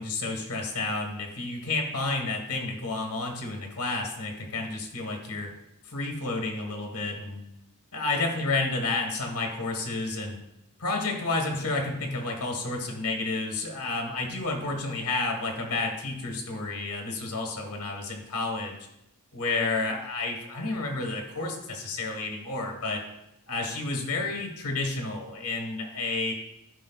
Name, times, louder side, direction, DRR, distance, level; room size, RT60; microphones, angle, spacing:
voice 1, 0.0-5.5 5.8-7.5 7.9-10.3 10.8-18.8 19.3-23.0 23.5-26.3, left 3 dB, 90° left, 1 dB, 1.4 m, -30 dB
12.0 x 5.1 x 2.3 m, 0.85 s
head